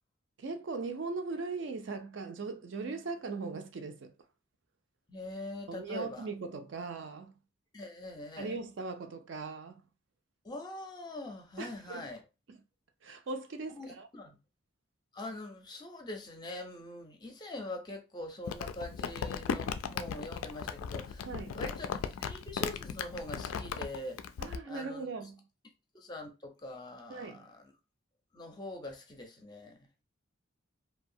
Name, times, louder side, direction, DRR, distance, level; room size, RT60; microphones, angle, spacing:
voice 1, 0.4-4.1 5.7-7.4 8.4-9.8 11.6-12.1 13.0-14.1 21.2-21.6 24.4-25.4 27.1-27.5, right 3 dB, 60° right, 0.4 m, -39 dB
voice 2, 5.1-6.3 7.7-8.6 10.4-12.2 13.7-14.4 15.1-21.3 21.6-24.2 24.7-25.0 25.9-27.6 28.3-29.8, left 1 dB, 20° left, 0.5 m, -43 dB
Crumpling crinkling, 18.5-24.6, left 7 dB, 85° left, 0.3 m, -37 dB
2.7 x 2.1 x 2.6 m
head